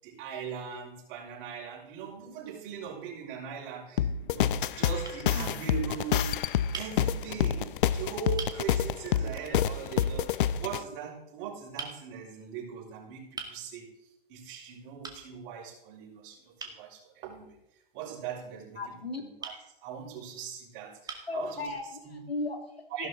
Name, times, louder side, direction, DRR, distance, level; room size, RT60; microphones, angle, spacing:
voice 1, 0.0-6.3 6.7-13.9 14.3-18.8 19.2-21.7 22.0-22.2 22.9-23.1, right 7 dB, 40° right, -3 dB, 5.9 m, -40 dB
sound 1, 4.0-10.8, left 9 dB, 60° left, 0.7 m, -28 dB
sound 2, 5.0-5.2 6.7-6.9 7.8-7.9 8.4-8.6 10.0-10.2 11.8-12.0 13.4-13.6 15.0-15.2 16.6-16.8 19.4-19.6 20.4-20.5 21.1-21.4, right 4 dB, 15° right, 2.1 m, -41 dB
voice 2, 5.3-5.9 18.8-19.2 21.3-21.9 22.1-23.1, left 3 dB, 85° left, 3 dB, 2.7 m, -36 dB
15.5 x 12.5 x 4.0 m, 0.83 s
figure-of-eight pair, 95°, 30 cm